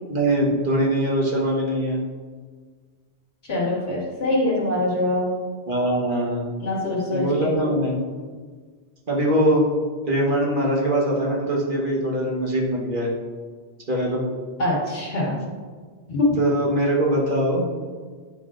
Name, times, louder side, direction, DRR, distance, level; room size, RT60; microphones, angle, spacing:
voice 1, 0.1-2.0 5.7-6.4 7.1-7.9 9.1-9.6 10.1-13.1 13.9-14.2 16.4-17.7, right 1 dB, 50° right, -3 dB, 1.3 m, -22 dB
voice 2, 3.4-5.2 6.6-7.5 14.6-15.4 16.1-16.3, left 2 dB, 65° left, -5 dB, 2.1 m, -24 dB
9.1 x 5.7 x 2.5 m, 1.5 s
omnidirectional pair, 1.1 m